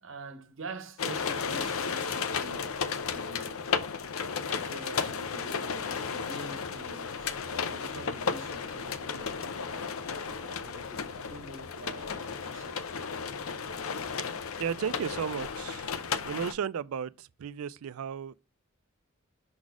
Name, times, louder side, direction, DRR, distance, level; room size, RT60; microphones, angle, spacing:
voice 1, 0.0-2.8 3.1-3.7 4.4-10.0 10.2-12.8, right 3 dB, 65° right, 1.0 m, -46 dB
sound 1, 1.0-16.5, left 6 dB, 85° left, 0.6 m, -34 dB
voice 2, 14.6-15.9 16.2-18.3, right 7 dB, 85° right, 0.4 m, -34 dB
6.0 x 4.1 x 4.6 m
head